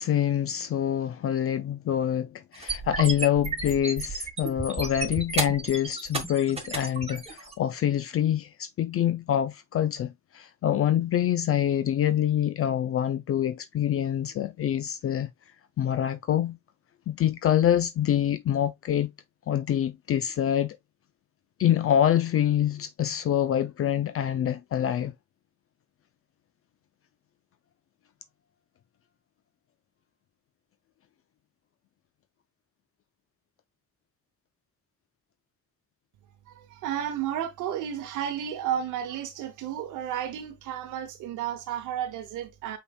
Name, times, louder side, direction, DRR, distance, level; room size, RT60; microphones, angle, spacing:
voice 1, 0.0-15.3 15.8-16.6 17.1-19.1 19.5-20.8 21.6-25.1, left 10 dB, 50° left, 0.4 m, -26 dB
sound 1, 2.5-7.5, right 4 dB, 20° right, 1.4 m, -32 dB
voice 2, 36.5-42.8, right 10 dB, 90° right, 0.8 m, -32 dB
5.2 x 4.5 x 2.2 m
cardioid pair, 90°, 30 cm